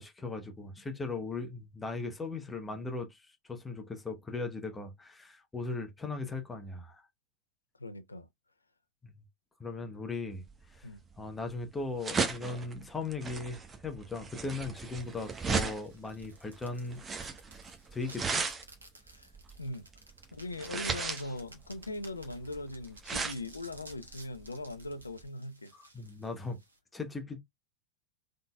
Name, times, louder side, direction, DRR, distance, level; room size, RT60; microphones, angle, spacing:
voice 1, 0.0-3.2 3.5-7.0 9.0-9.1 9.6-10.4 10.7-10.9 11.2-17.0 17.9-18.5 25.7-26.6 26.9-27.4, left 3 dB, 10° left, 1.0 m, -38 dB
voice 2, 7.8-8.3 10.8-11.0 19.1-19.3 19.6-19.9 20.3-25.7, left 2 dB, 80° left, 0.5 m, -40 dB
sound 1, 10.5-25.3, right 5 dB, 15° right, 1.0 m, -37 dB
sound 2, 14.9-26.8, right 2 dB, 80° right, 1.1 m, -56 dB
3.9 x 3.7 x 2.2 m
figure-of-eight pair, 90°, 0 cm